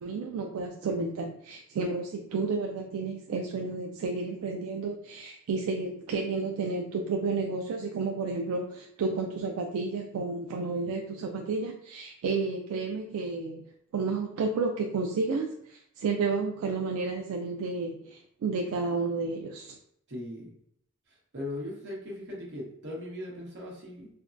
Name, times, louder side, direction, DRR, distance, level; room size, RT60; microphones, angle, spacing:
voice 1, 0.0-13.7 13.9-19.8, right 4 dB, 80° right, 2 dB, 0.3 m, -31 dB
voice 2, 20.1-20.5 21.3-24.1, left 1 dB, 60° right, -3 dB, 1.0 m, -38 dB
3.4 x 2.1 x 2.5 m, 0.72 s
head